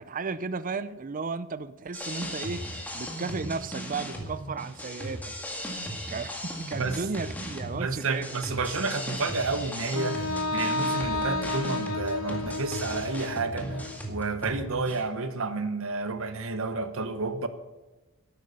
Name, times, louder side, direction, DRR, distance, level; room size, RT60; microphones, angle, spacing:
voice 1, 0.0-2.6 2.9-5.3 5.7-8.3, right 4 dB, 40° right, 0.5 m, -34 dB
sound 1, 1.9-15.0, equal, 10° left, 1.9 m, -37 dB
voice 2, 7.7-17.5, right 3 dB, 65° right, 1.0 m, -31 dB
Wind instrument woodwind instrument, 10.0-14.0, left 2 dB, 75° left, 1.0 m, -32 dB
12.0 x 9.1 x 6.8 m
head